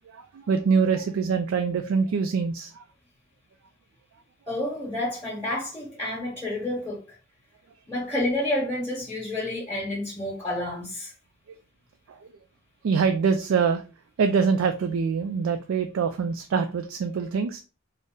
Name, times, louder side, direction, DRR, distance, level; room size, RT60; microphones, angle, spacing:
voice 1, 0.1-2.8 12.1-12.2 12.8-13.8 14.2-17.6, right 5 dB, 90° right, 0.3 m, -24 dB
voice 2, 4.5-7.2 7.9-11.1, left 1 dB, 15° left, 1.0 m, -29 dB
3.9 x 2.0 x 3.5 m
head